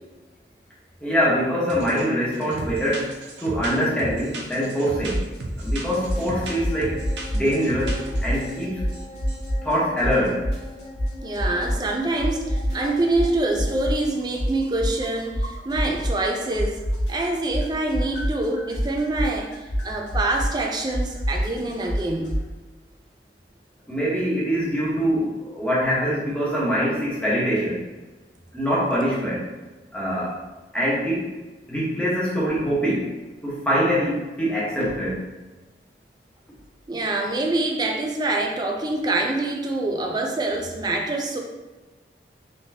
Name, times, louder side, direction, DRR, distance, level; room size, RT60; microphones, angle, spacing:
voice 1, 1.0-3.1 3.4-5.2 5.6-8.8 9.6-10.4 23.9-27.8 28.5-29.5 29.9-30.4 30.7-31.3 31.7-33.1 33.4-35.2, equal, 5° left, -8 dB, 1.1 m, -24 dB
sound 1, 1.7-2.0 2.3-8.6 8.9-9.5, right 1 dB, 80° right, 0.6 m, -35 dB
sound 2, 5.1-5.4 5.6-7.5 7.8-9.7 10.0-11.9 12.2-16.3 16.5-22.4, equal, 80° left, 1.3 m, -26 dB
sound 3, 6.0-14.0, left 2 dB, 30° left, 1.1 m, -41 dB
voice 2, 11.2-16.8 17.1-22.4 36.9-41.4, right 2 dB, 25° right, 2 dB, 0.4 m, -25 dB
3.9 x 3.7 x 2.8 m, 1.2 s
head